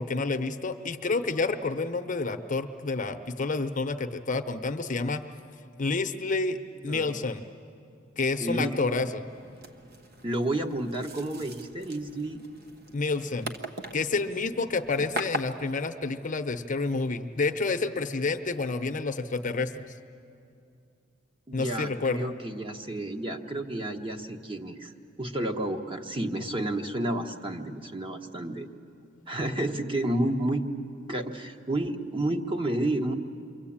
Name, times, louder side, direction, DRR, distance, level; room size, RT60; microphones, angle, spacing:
voice 1, 0.0-5.2 5.8-6.6 6.8-7.4 8.2-9.3 12.9-13.5 13.9-19.8 21.5-22.3, left 3 dB, 40° left, 8 dB, 0.9 m, -29 dB
voice 2, 6.8-7.1 8.4-8.8 10.2-12.4 21.5-24.9 25.2-28.7 29.3-30.7 31.1-33.1, right 1 dB, 25° right, 4 dB, 1.3 m, -30 dB
sound 1, 9.3-15.4, right 1 dB, 55° right, 1.3 m, -40 dB
28.5 x 23.0 x 8.8 m, 2.5 s
head